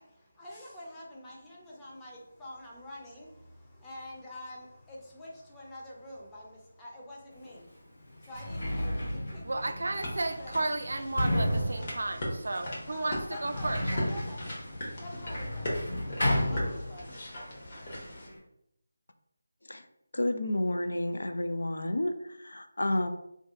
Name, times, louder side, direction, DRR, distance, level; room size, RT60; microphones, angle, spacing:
voice 1, 0.0-9.8 10.4-11.2 12.9-17.3, left 1 dB, 10° left, -5 dB, 0.5 m, -47 dB
Sliding door, 7.4-7.5 8.1-17.3 17.6-18.4, left 1 dB, 55° left, 1.3 m, -33 dB
voice 2, 9.4-14.0, right 2 dB, 65° right, 7 dB, 0.3 m, -33 dB
sound 1, 9.9-18.3, equal, 40° left, 1.0 m, -39 dB
voice 3, 20.1-23.1, left 1 dB, 80° left, 7 dB, 0.4 m, -30 dB
2.6 x 2.2 x 3.5 m, 0.79 s
figure-of-eight pair, 165°, 0 cm